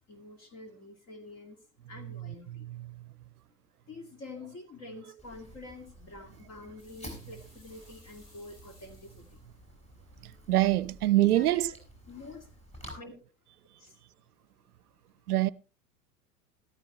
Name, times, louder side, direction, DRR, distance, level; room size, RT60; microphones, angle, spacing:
voice 1, 0.0-1.6 1.9-2.7 3.9-9.4 11.2-11.7 12.1-12.5 12.9-13.2 13.8-14.0, left 3 dB, 35° left, 2.2 m, -47 dB
voice 2, 2.0-3.0 10.2-11.7 15.3-15.5, right 15 dB, 70° right, 0.6 m, -26 dB
Fire, 5.2-12.9, equal, 15° left, 5.9 m, -51 dB
sound 1, 6.8-9.5, left 1 dB, 75° left, 6.1 m, -60 dB
14.0 x 14.0 x 3.0 m
figure-of-eight pair, 85°, 47 cm